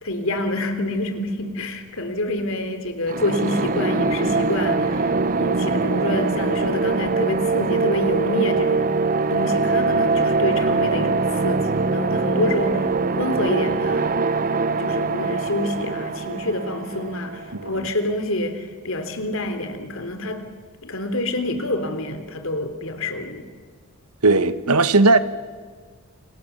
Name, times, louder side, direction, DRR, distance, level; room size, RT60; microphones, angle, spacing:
voice 1, 0.0-8.9 9.3-12.9 13.1-14.2 14.8-20.5 20.8-23.4, left 1 dB, 60° left, 8 dB, 3.5 m, -27 dB
Octaving horns, 3.1-17.8, right 3 dB, 40° right, 0.9 m, -22 dB
voice 2, 17.5-17.9 24.2-25.2, right 3 dB, 90° right, 12 dB, 1.4 m, -17 dB
29.5 x 27.5 x 7.2 m, 1.5 s
head